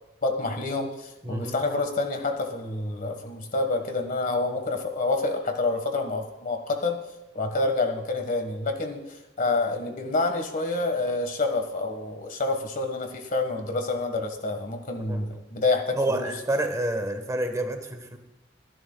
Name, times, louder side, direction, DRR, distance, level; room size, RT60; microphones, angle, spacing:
voice 1, 0.2-7.0 7.3-16.3, left 3 dB, 45° left, 6 dB, 1.6 m, -28 dB
voice 2, 1.2-1.6 15.1-15.2 16.0-18.2, right 1 dB, 20° right, 6 dB, 1.2 m, -28 dB
24.0 x 11.0 x 2.3 m, 0.97 s
head